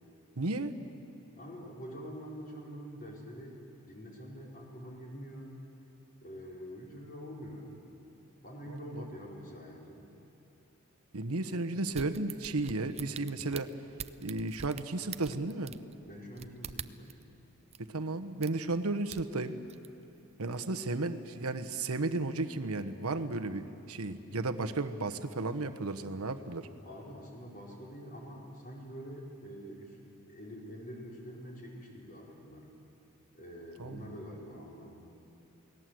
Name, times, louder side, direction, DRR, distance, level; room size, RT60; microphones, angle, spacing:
voice 1, 0.4-0.7 8.9-9.0 11.1-13.7 14.2-15.7 17.8-19.5 20.4-26.7 33.8-34.1, right 2 dB, 70° right, 7 dB, 1.2 m, -34 dB
voice 2, 1.3-5.6 6.2-7.7 8.4-10.0 16.1-17.2 26.8-30.0 30.3-32.7 33.3-34.9, equal, 40° left, -3 dB, 5.1 m, -46 dB
sound 1, 11.9-17.2 17.7-17.8 18.4-18.8 19.1-19.9 20.3-20.4, right 7 dB, 30° right, 0.5 m, -45 dB
29.0 x 19.5 x 7.8 m, 2.8 s
head